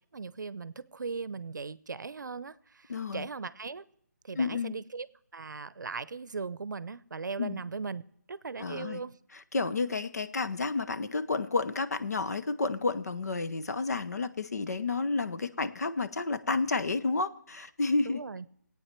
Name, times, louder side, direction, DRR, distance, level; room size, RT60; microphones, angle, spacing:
voice 1, 0.1-3.8 4.2-5.1 5.3-8.0 8.3-9.1 18.0-18.5, right 4 dB, 85° right, 19 dB, 0.6 m, -38 dB
voice 2, 2.9-3.3 4.4-4.7 7.4-7.6 8.6-9.0 9.3-18.2, left 3 dB, 60° left, 11 dB, 0.8 m, -31 dB
17.5 x 8.8 x 4.4 m, 0.72 s
hypercardioid pair, 175°, 10 cm